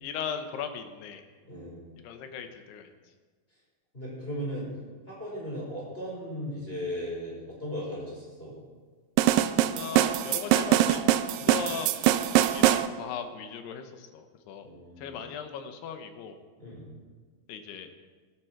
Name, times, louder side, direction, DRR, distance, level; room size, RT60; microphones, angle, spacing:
voice 1, 0.0-1.2 2.0-2.9 9.7-11.9 12.5-14.7 15.0-16.4 17.5-17.9, left 7 dB, 90° left, 7 dB, 3.2 m, -38 dB
voice 2, 1.4-1.8 3.9-4.7 5.1-8.5 11.4-11.6 14.6-15.2 16.6-16.9, equal, 15° left, -5 dB, 5.2 m, -37 dB
sound 1, 9.2-12.9, right 13 dB, 85° right, 2.0 m, -23 dB
17.0 x 13.5 x 4.6 m, 1.4 s
omnidirectional pair, 4.5 m